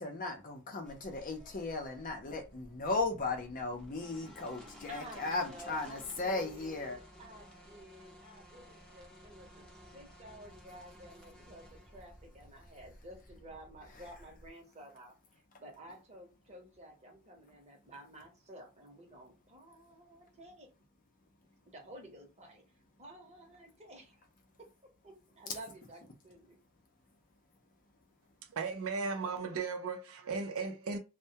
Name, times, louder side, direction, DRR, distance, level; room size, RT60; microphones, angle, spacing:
voice 1, 0.0-7.0 13.9-14.1, left 3 dB, 40° left, 0.6 m, -36 dB
sound 1, 0.8-14.5, equal, 5° left, 0.7 m, -55 dB
voice 2, 4.9-15.1 15.6-20.7 21.7-22.6 23.0-24.3 24.6-26.6, right 1 dB, 30° right, 0.9 m, -52 dB
voice 3, 28.4-31.0, right 4 dB, 65° right, 0.5 m, -36 dB
2.2 x 2.1 x 2.7 m
head